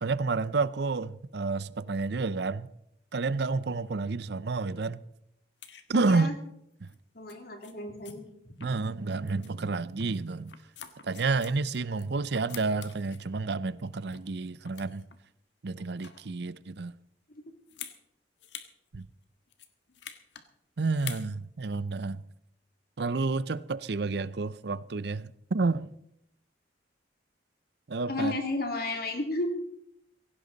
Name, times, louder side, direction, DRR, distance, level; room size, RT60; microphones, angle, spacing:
voice 1, 0.0-2.7 3.1-5.0 5.9-6.3 6.8-6.9 8.6-10.5 11.0-15.0 15.6-16.9 18.9-19.1 20.8-22.2 23.0-25.9 27.9-28.3, right 3 dB, 60° right, 0.6 m, -30 dB
sound 1, 5.6-5.8 6.8-7.0 7.3-7.4 7.6-7.7 8.0-8.1 8.6-9.0 9.3-9.5 10.0-12.0 12.3-13.2 13.8-14.3 14.6-15.2 15.8-16.3 17.7-18.0 18.4-18.7 19.0-19.1 19.5-20.4 20.9-21.3 21.7-21.9, left 9 dB, 70° left, 1.5 m, -46 dB
voice 2, 5.9-6.3 7.1-8.2 17.3-17.4 28.1-29.5, left 2 dB, 55° left, 2.8 m, -32 dB
17.0 x 16.5 x 4.0 m
head